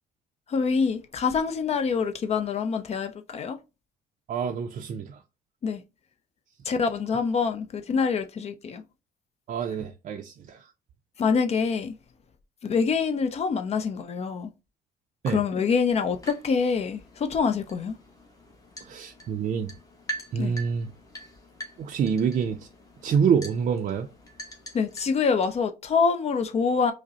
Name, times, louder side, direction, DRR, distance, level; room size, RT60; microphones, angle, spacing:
voice 1, 0.5-3.6 5.6-5.8 6.6-8.8 11.2-11.9 12.6-14.5 15.3-18.0 20.4-20.5 24.7-26.9, left 5 dB, 40° left, 0.5 m, -25 dB
voice 2, 4.3-5.2 9.5-10.6 15.2-15.4 18.8-19.7 20.3-20.9 21.8-22.7 23.0-24.1, right 6 dB, 45° right, 0.4 m, -27 dB
sound 1, 15.9-25.6, right 2 dB, 20° left, 0.9 m, -44 dB
4.9 x 2.1 x 2.8 m
cardioid pair, 110°, 17 cm